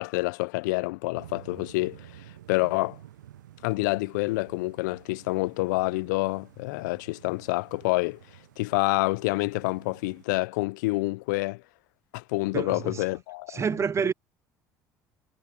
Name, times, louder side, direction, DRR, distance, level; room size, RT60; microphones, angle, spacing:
voice 1, 0.0-3.0 3.6-8.2 8.6-11.6 12.1-13.6, left 23 dB, 75° left, 0.5 m, -28 dB
sound 1, 1.1-10.3, right 12 dB, 85° right, 0.9 m, -51 dB
voice 2, 12.5-13.1 13.5-14.1, right 6 dB, 30° right, 0.5 m, -28 dB
hypercardioid pair, 60°, 10 cm